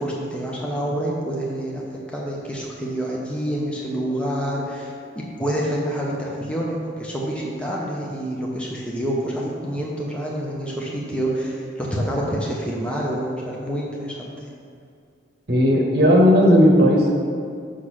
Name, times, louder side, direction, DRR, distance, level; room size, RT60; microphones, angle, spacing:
voice 1, 0.0-14.5, right 1 dB, 5° left, -4 dB, 0.8 m, -27 dB
voice 2, 15.5-17.1, equal, 55° right, -1 dB, 1.1 m, -15 dB
6.4 x 3.8 x 6.2 m, 2.3 s
head